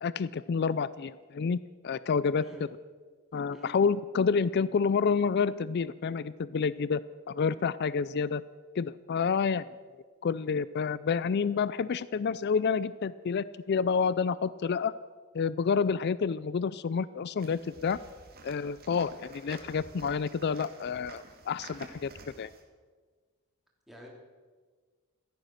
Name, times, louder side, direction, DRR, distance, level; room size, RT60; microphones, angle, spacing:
voice 1, 0.0-2.4 3.3-7.0 7.3-8.4 8.8-9.6 10.2-14.9 15.3-18.0 18.4-22.1 22.4-22.5, left 5 dB, 50° left, 18 dB, 0.4 m, -29 dB
voice 2, 2.4-2.6 3.5-3.7 23.9-24.1, equal, ahead, -2 dB, 3.2 m, -48 dB
sound 1, 17.4-22.6, right 3 dB, 45° right, 2.3 m, -50 dB
16.0 x 13.5 x 6.4 m, 1.5 s
head